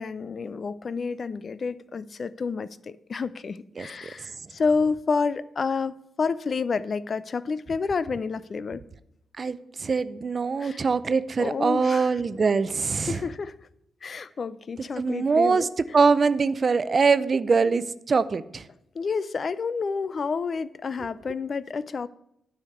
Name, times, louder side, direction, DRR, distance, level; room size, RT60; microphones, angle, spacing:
voice 1, 0.0-8.8 10.6-10.8 11.4-12.1 13.1-13.5 14.0-15.7 18.9-22.1, left 4 dB, 50° left, 0.5 m, -29 dB
voice 2, 9.4-13.2 15.0-15.7 15.9-18.7, right 4 dB, 45° right, 0.5 m, -23 dB
9.5 x 5.0 x 7.9 m
cardioid pair, 65°, 0 cm